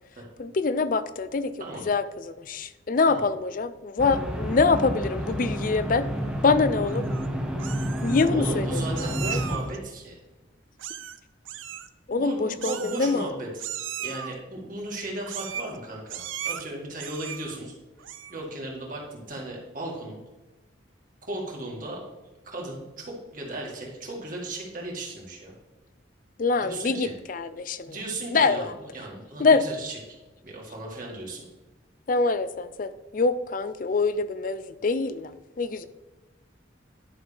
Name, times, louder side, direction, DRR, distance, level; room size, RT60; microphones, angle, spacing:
voice 1, 0.4-1.5 1.9-6.1 6.4-7.1 8.0-9.4 12.1-13.3 26.4-27.9 28.3-28.7 29.4-29.6 32.1-35.3 35.6-35.9, left 4 dB, 45° left, 14 dB, 0.4 m, -25 dB
voice 2, 1.6-1.9 3.1-3.3 8.2-10.2 12.1-13.6 14.0-17.7 18.3-20.2 21.3-22.0 22.5-25.5 26.6-27.1 27.8-30.0 30.4-31.4, right 2 dB, 45° right, -1 dB, 2.1 m, -36 dB
sound 1, 4.0-9.6, equal, 5° right, 0.8 m, -29 dB
Meow, 6.9-7.3 7.6-8.3 9.0-9.8 10.8-11.2 11.4-11.9 12.6-13.3 13.6-14.3 15.3-15.8 16.1-16.6 17.0-17.6 18.0-18.4, right 9 dB, 85° right, 0.5 m, -36 dB
11.0 x 5.8 x 3.4 m, 1.1 s
head